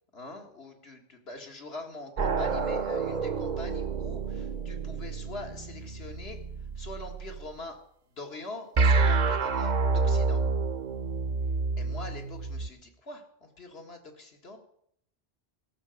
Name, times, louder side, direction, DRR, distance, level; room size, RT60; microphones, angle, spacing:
voice 1, 0.1-6.4 6.8-7.8 8.2-10.4 11.8-14.6, left 2 dB, 75° left, 3 dB, 2.0 m, -43 dB
sound 1, 2.2-7.5 8.8-12.7, right 4 dB, 45° right, 0.8 m, -28 dB
16.0 x 6.8 x 6.3 m, 0.71 s
omnidirectional pair, 1.1 m